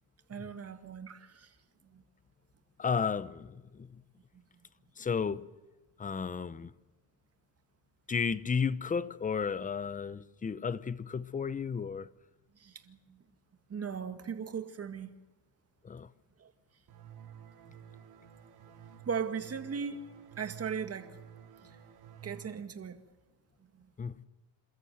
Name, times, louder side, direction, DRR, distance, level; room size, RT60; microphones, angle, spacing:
voice 1, 0.3-1.5 1.9-2.0 12.6-13.0 13.7-15.1 16.4-16.5 19.1-20.0 20.4-21.1 22.2-23.0, right 6 dB, 30° right, 2.1 m, -37 dB
voice 2, 2.8-4.0 5.0-5.5 6.0-6.7 8.1-12.1 15.8-16.1 24.0-24.2, left 6 dB, 15° left, 0.7 m, -33 dB
sound 1, 16.9-22.5, right 8 dB, 55° right, 4.6 m, -52 dB
28.0 x 13.5 x 8.1 m
cardioid pair, 115°, 46 cm